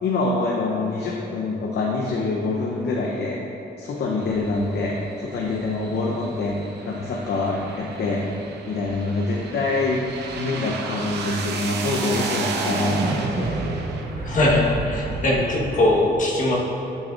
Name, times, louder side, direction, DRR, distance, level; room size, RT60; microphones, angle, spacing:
voice 1, 0.0-3.4 3.8-5.0 5.2-8.3 8.6-10.0 10.4-13.5, left 3 dB, 85° left, -2 dB, 0.8 m, -25 dB
sound 1, 4.2-15.9, right 3 dB, 90° right, 0.8 m, -31 dB
voice 2, 14.2-16.6, left 1 dB, 50° left, -3 dB, 1.3 m, -20 dB
12.0 x 6.4 x 2.5 m, 3.0 s
wide cardioid pair, 165°, 17 cm